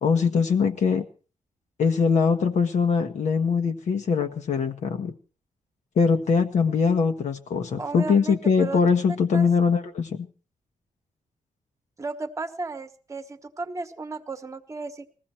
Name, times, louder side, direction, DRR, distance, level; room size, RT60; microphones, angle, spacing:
voice 1, 0.0-1.0 1.8-5.1 6.0-10.3, left 5 dB, 65° left, 5 dB, 1.3 m, -22 dB
voice 2, 7.8-8.8 9.3-9.5 12.0-15.1, right 3 dB, 25° right, 8 dB, 1.2 m, -34 dB
20.0 x 14.5 x 4.4 m, 0.39 s
wide cardioid pair, 170°, 13 cm